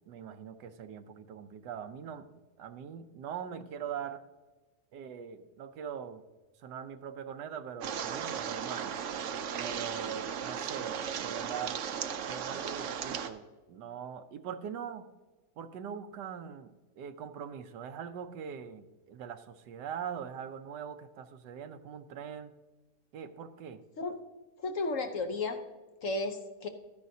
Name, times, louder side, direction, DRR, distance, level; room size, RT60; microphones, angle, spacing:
voice 1, 0.1-2.3 2.6-4.2 4.9-6.2 6.6-8.9 9.6-11.8 12.2-15.1 15.6-22.5 23.1-23.8, right 8 dB, 85° right, 10 dB, 1.3 m, -42 dB
sound 1, 7.8-13.3, right 7 dB, 60° right, 0.8 m, -36 dB
voice 2, 24.6-25.6 26.0-26.7, left 3 dB, 60° left, 6 dB, 1.0 m, -33 dB
13.0 x 10.5 x 2.7 m, 1.2 s
omnidirectional pair, 1.8 m